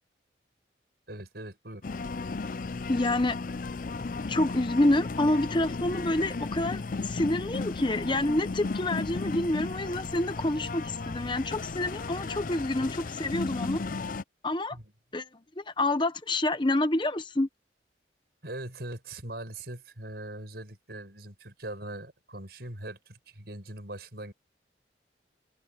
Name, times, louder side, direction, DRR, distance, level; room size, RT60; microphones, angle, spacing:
voice 1, 1.1-1.9 14.7-14.9 18.4-24.3, right 1 dB, 60° right, 5.6 m, -41 dB
sound 1, 1.8-14.2, left 3 dB, 45° left, 0.5 m, -35 dB
voice 2, 2.9-3.4 4.3-13.8 14.4-14.8 15.1-15.3 15.6-17.5, left 1 dB, 25° left, 0.9 m, -28 dB
head